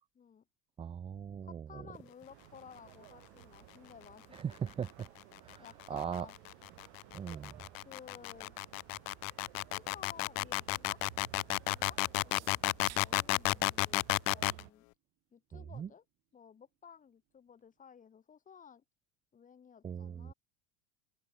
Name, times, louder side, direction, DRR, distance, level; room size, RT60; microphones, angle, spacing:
voice 1, 0.2-0.5 1.4-4.3 4.6-4.8 5.6-6.4 7.9-8.6 9.7-11.0 11.7-14.1 14.3-14.9 15.3-16.0 16.3-18.8 19.3-20.3, left 7 dB, 20° left, 3.4 m, -55 dB
voice 2, 0.8-1.9 4.3-5.1 5.4-6.3 7.1-7.6 15.5-15.9 19.8-20.3, right 8 dB, 15° right, 0.6 m, -40 dB
sound 1, 2.3-14.7, right 40 dB or more, 60° right, 1.8 m, -57 dB
sound 2, 5.4-14.6, left 28 dB, 80° left, 0.5 m, -32 dB
sound 3, 12.1-17.8, right 15 dB, 40° right, 5.0 m, -64 dB
open air
cardioid pair, 155°, 38 cm